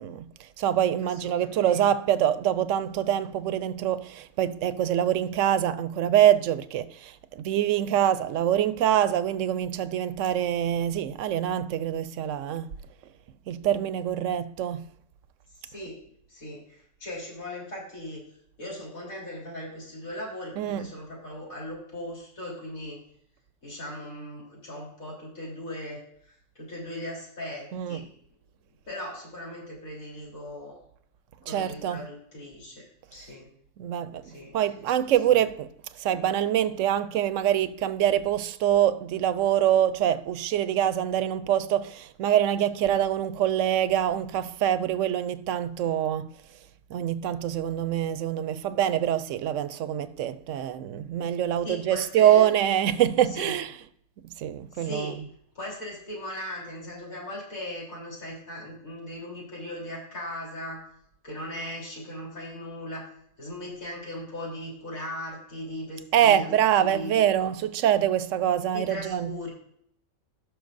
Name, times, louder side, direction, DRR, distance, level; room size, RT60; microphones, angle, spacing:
voice 1, 0.0-12.7 13.5-14.9 20.6-20.9 27.7-28.1 31.5-32.1 33.8-35.7 36.0-46.3 46.9-53.7 54.2-55.2 66.1-69.4, right 10 dB, 70° right, 0.9 m, -25 dB
voice 2, 1.0-1.9 15.6-16.0 16.3-18.2 18.6-23.0 23.6-28.1 28.9-30.8 31.4-33.5 34.2-34.8 35.3-35.4 51.6-52.5 53.3-53.5 54.7-55.2 55.6-60.8 61.2-63.1 63.4-67.2 68.7-69.5, left 1 dB, 80° left, 4.0 m, -38 dB
18.0 x 6.1 x 2.6 m
omnidirectional pair, 1.4 m